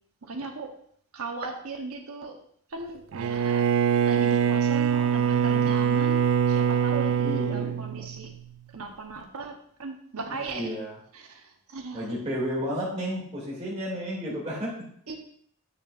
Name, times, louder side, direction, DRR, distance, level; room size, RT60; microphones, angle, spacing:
voice 1, 0.2-0.7 1.1-2.4 2.7-3.7 4.1-8.3 8.7-10.7 11.1-12.1 15.1-15.2, right 3 dB, 75° right, 4 dB, 1.0 m, -37 dB
Bowed string instrument, 3.1-8.5, right 7 dB, 60° right, 0.3 m, -24 dB
voice 2, 4.9-5.7 7.2-7.9 10.5-10.9 11.9-14.8, equal, 30° right, -6 dB, 2.6 m, -33 dB
8.4 x 6.4 x 2.5 m, 0.62 s
head